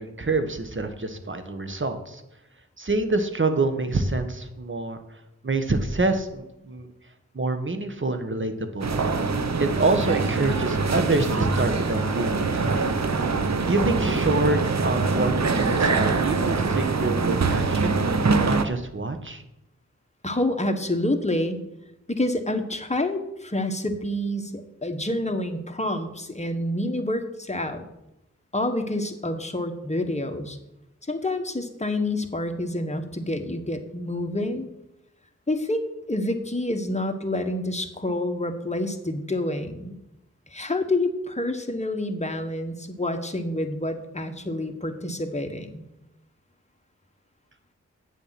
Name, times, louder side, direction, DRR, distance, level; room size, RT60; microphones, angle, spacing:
voice 1, 0.0-2.2 2.8-5.0 5.4-6.9 7.3-8.9 9.6-12.9 13.7-18.0 18.4-19.4, right 2 dB, 40° right, 8 dB, 1.4 m, -26 dB
sound 1, 8.8-18.7, right 4 dB, 60° right, 0.9 m, -24 dB
voice 2, 20.2-21.6 22.1-27.9 28.5-30.6 31.1-34.7 35.5-40.0 40.5-45.9, left 1 dB, 20° left, 6 dB, 1.5 m, -28 dB
9.2 x 7.1 x 6.0 m, 0.91 s
cardioid pair, 40°, 31 cm